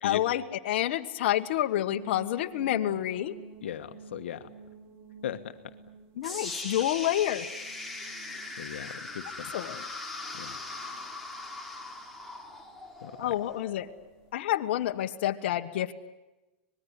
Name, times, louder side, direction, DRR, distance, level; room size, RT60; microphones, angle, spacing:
voice 1, 0.0-3.3 6.2-7.5 9.5-9.8 13.2-13.9 14.3-15.9, left 13 dB, 65° left, 5 dB, 1.5 m, -28 dB
sound 1, 1.9-14.9, right 5 dB, 45° right, 3.6 m, -53 dB
voice 2, 3.6-4.5 5.2-5.5 8.6-9.5 10.3-10.6 13.0-13.4, left 10 dB, 85° left, 8 dB, 1.4 m, -37 dB
sound 2, 6.2-14.3, left 2 dB, ahead, 3.2 m, -40 dB
25.5 x 20.5 x 9.9 m, 1.0 s
supercardioid pair, 135°, 6 cm